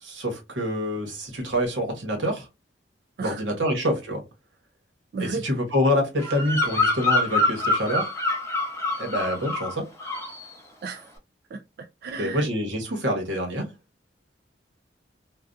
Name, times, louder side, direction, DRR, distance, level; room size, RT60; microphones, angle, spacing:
voice 1, 0.0-2.5 3.2-4.2 5.2-8.1 9.0-9.9 12.2-13.7, equal, 85° right, 1.1 m, -26 dB
voice 2, 5.1-5.4 10.8-11.1 11.5-12.4, right 4 dB, 60° right, 0.3 m, -34 dB
Bird vocalization bird call bird song, 6.2-9.7 10.0-10.4, left 2 dB, 15° left, 0.7 m, -25 dB
2.6 x 2.3 x 2.2 m
head